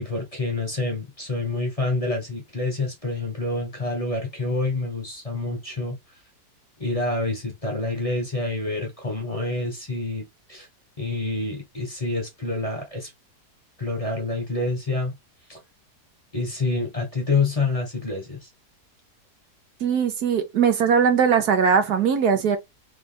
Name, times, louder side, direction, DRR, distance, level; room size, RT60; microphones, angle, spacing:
voice 1, 0.0-6.0 6.8-10.7 11.0-13.1 13.8-15.2 15.5-15.6 16.3-18.5, left 3 dB, 20° left, 1.4 m, -27 dB
voice 2, 19.8-22.6, right 7 dB, 70° right, 1.4 m, -20 dB
3.8 x 3.4 x 3.4 m
omnidirectional pair, 1.7 m